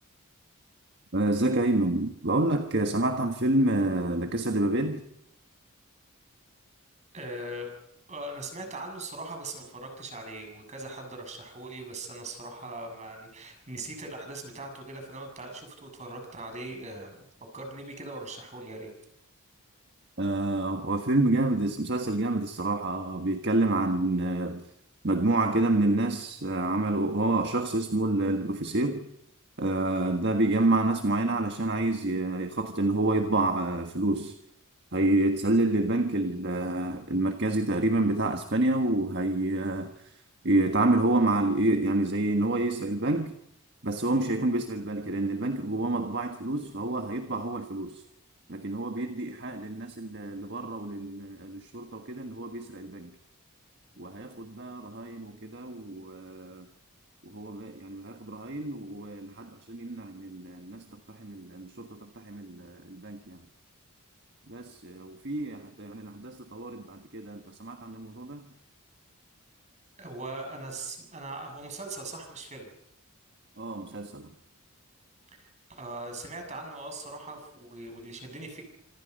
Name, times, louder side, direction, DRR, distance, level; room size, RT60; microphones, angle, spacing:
voice 1, 1.1-5.0 20.2-24.6 25.0-29.1 29.6-34.3 34.9-40.1 40.4-43.3 43.8-48.0 48.5-53.1 54.0-56.7 57.2-63.4 64.5-68.5 73.6-74.3, right 2 dB, 50° right, 6 dB, 1.5 m, -28 dB
voice 2, 7.1-7.7 8.1-17.3 17.5-18.9 70.0-72.7 75.3-78.6, right 2 dB, 30° right, 4 dB, 7.1 m, -40 dB
26.5 x 26.5 x 5.4 m, 0.76 s
head